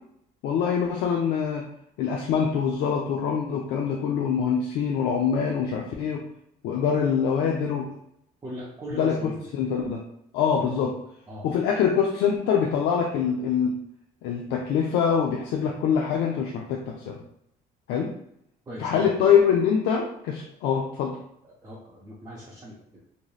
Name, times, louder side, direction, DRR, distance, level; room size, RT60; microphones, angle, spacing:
voice 1, 0.4-1.6 2.0-6.2 6.6-8.0 8.9-10.0 10.3-10.9 11.4-13.7 14.2-17.2 17.9-18.1 18.8-21.2, left 7 dB, 85° left, 0 dB, 0.4 m, -24 dB
voice 2, 8.4-9.4 10.6-10.7 11.3-11.5 18.7-19.1 21.4-23.0, equal, 20° right, -5 dB, 0.6 m, -39 dB
2.9 x 2.7 x 2.3 m, 0.74 s
cardioid pair, 110°, 17 cm